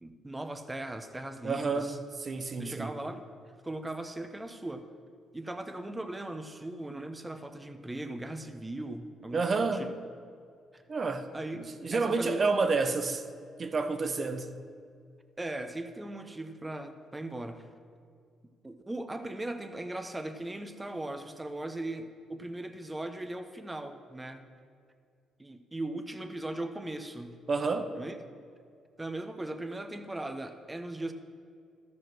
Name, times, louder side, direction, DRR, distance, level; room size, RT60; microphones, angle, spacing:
voice 1, 0.0-2.0 2.6-3.2 3.6-4.9 5.3-9.9 10.7-10.8 11.3-11.6 11.9-12.5 15.4-17.7 18.6-24.5 25.4-27.4 28.0-28.2 29.0-31.1, right 1 dB, 15° right, 0.9 m, -38 dB
voice 2, 1.4-3.0 9.3-9.9 10.9-11.3 11.6-13.2 13.6-14.6 27.5-27.9, right 4 dB, 40° right, 0.9 m, -29 dB
13.0 x 5.4 x 6.1 m
cardioid pair, 90°, 0 cm